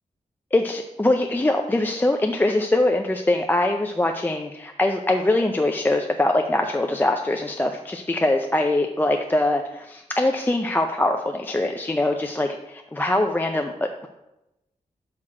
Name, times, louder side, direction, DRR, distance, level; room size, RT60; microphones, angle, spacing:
voice 1, 0.5-14.1, left 1 dB, 15° left, 4 dB, 0.4 m, -23 dB
6.2 x 5.8 x 4.4 m, 0.93 s
wide cardioid pair, 100°, 14 cm